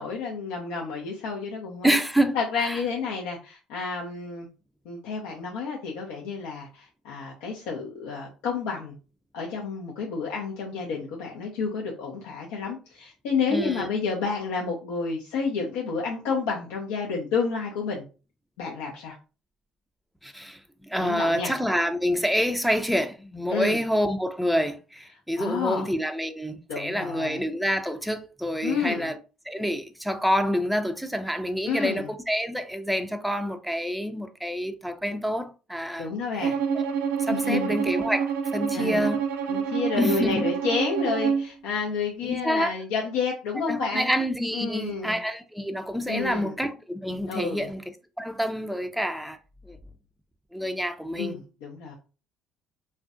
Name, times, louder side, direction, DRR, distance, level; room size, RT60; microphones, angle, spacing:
voice 1, 0.0-2.0 2.3-4.5 4.9-8.9 9.3-18.0 18.6-19.1 21.0-21.5 23.5-23.8 25.4-25.9 26.7-27.4 28.6-29.1 31.7-32.1 36.0-36.5 37.3-37.7 38.7-39.1 39.5-44.1 44.5-45.2 46.1-46.5 47.3-47.7 51.2-51.9, left 5 dB, 80° left, 0.5 m, -30 dB
voice 2, 1.8-2.8 13.5-13.9 20.2-20.6 20.9-29.2 29.5-36.9 37.2-39.2 40.0-40.4 42.2-42.7 43.7-47.8 48.2-49.4 49.7-49.8 50.5-51.4, equal, ahead, 0.4 m, -27 dB
Bowed string instrument, 36.4-41.5, right 7 dB, 80° right, 0.4 m, -27 dB
2.4 x 2.1 x 2.4 m
supercardioid pair, 65°, 2 cm